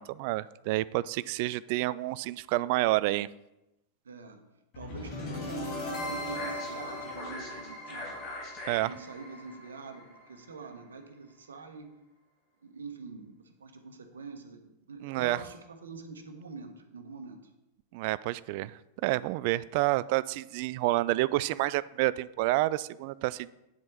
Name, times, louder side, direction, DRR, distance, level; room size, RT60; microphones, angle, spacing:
voice 1, 0.0-3.3 8.7-8.9 15.0-15.4 17.9-23.5, right 18 dB, 45° right, 0.3 m, -29 dB
voice 2, 4.0-4.4 4.7-8.2 8.8-11.9 12.6-17.4, right 4 dB, 70° right, 1.2 m, -45 dB
sound 1, 4.7-10.8, left 1 dB, 40° left, 3.3 m, -38 dB
9.5 x 7.6 x 4.3 m
figure-of-eight pair, 90°, 0 cm